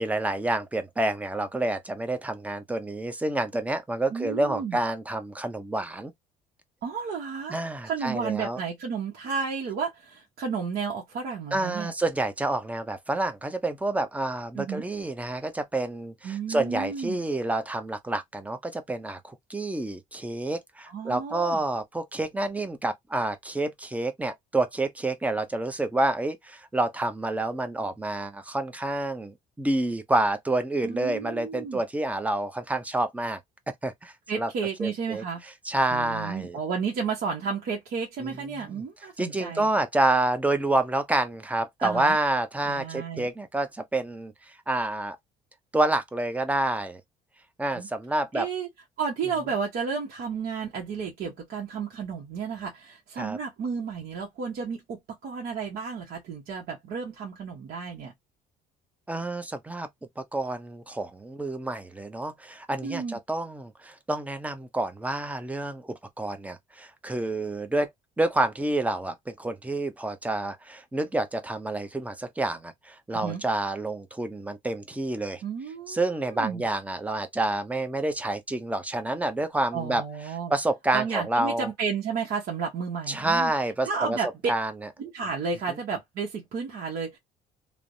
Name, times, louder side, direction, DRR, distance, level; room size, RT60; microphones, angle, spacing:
voice 1, 0.0-6.1 7.5-8.6 11.5-33.4 33.7-34.5 34.8-36.6 38.2-38.8 39.2-45.2 45.7-47.0 47.6-48.5 53.2-53.4 59.1-59.9 60.2-67.9 68.2-75.4 75.9-80.0 80.5-81.7 83.1-84.2 84.5-84.7, right 2 dB, 10° right, 0.5 m, -28 dB
voice 2, 4.1-4.8 6.8-7.6 7.8-11.9 14.5-14.8 16.2-17.2 20.9-21.6 30.8-31.8 34.3-35.4 35.9-39.7 41.8-42.2 42.7-43.3 47.7-47.9 48.3-48.7 49.0-58.1 62.8-63.2 73.1-73.4 75.4-76.0 76.3-76.6 79.7-80.5 80.9-83.5 83.8-84.3 85.0-87.2, right 5 dB, 65° right, 0.9 m, -32 dB
3.2 x 2.0 x 2.6 m
cardioid pair, 110°, 17 cm